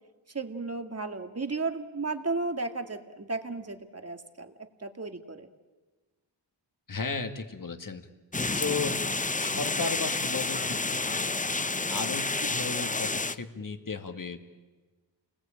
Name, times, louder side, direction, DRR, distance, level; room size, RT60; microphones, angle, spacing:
voice 1, 0.3-4.5 4.8-5.5 8.8-9.0 11.9-12.2, right 3 dB, 35° right, 7 dB, 2.2 m, -34 dB
voice 2, 6.9-8.1 8.5-9.0 9.4-11.4 11.9-14.4, left 4 dB, 45° left, 7 dB, 2.2 m, -35 dB
sound 1, 8.3-13.3, left 3 dB, 15° left, 0.7 m, -30 dB
29.5 x 20.0 x 8.9 m, 1.3 s
cardioid pair, 65°, 45 cm